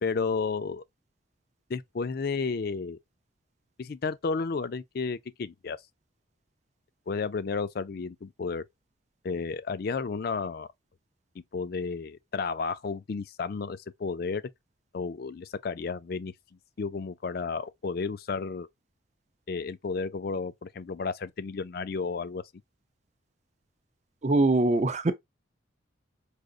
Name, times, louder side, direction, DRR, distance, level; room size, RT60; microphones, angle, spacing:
voice 1, 0.0-0.8 1.7-3.0 3.8-5.8 7.1-8.6 9.2-10.7 11.5-14.4 14.9-16.3 16.8-18.7 19.5-22.4, left 4 dB, 50° left, 0.4 m, -32 dB
voice 2, 24.2-25.1, right 2 dB, 35° right, 0.5 m, -22 dB
4.8 x 2.6 x 2.3 m
head